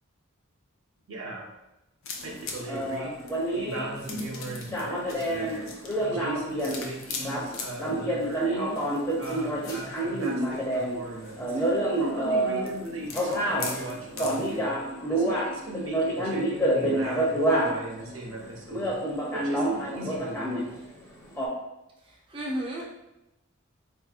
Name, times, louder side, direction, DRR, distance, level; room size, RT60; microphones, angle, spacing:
voice 1, 1.1-1.5 2.4-3.2 3.5-5.7 6.0-8.9 9.1-11.6 12.0-14.8 15.1-19.0 19.3-20.7, right 1 dB, 75° right, -1 dB, 0.7 m, -38 dB
sound 1, 2.0-14.6, left 3 dB, 70° left, 0.5 m, -42 dB
sound 2, 2.2-18.1 18.4-18.5 18.7-21.0 21.3-21.5, right 1 dB, 15° left, 0.7 m, -28 dB
voice 2, 22.0-22.8, equal, 25° right, -4 dB, 0.4 m, -34 dB
4.1 x 2.7 x 2.4 m, 0.93 s
head